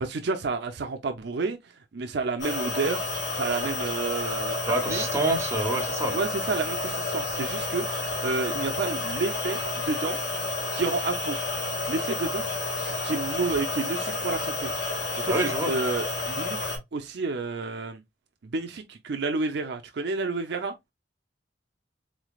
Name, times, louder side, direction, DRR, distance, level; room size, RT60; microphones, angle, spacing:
voice 1, 0.0-1.6 1.9-3.0 3.4-4.6 4.9-5.1 6.1-7.8 8.2-10.2 10.7-11.4 11.9-12.4 12.8-14.7 15.2-16.6 16.9-18.0 18.4-20.7, right 3 dB, 65° right, 0.5 m, -30 dB
sound 1, 2.4-16.8, left 3 dB, 90° left, 2.2 m, -30 dB
voice 2, 4.7-6.2 15.3-15.7, right 2 dB, 15° right, 1.0 m, -26 dB
3.8 x 3.2 x 2.3 m
head